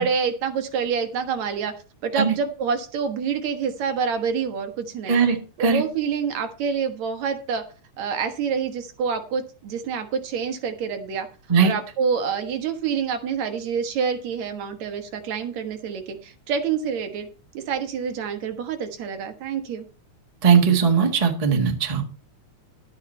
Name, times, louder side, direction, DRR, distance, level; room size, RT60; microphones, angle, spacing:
voice 1, 0.0-1.7 2.0-5.2 5.6-7.6 8.0-11.3 11.6-17.3 17.5-19.8, right 6 dB, 70° right, 7 dB, 2.4 m, -27 dB
voice 2, 5.1-5.8 11.5-11.7 20.4-22.0, right 6 dB, 20° right, 4 dB, 0.9 m, -19 dB
11.5 x 8.8 x 4.2 m, 0.36 s
omnidirectional pair, 3.4 m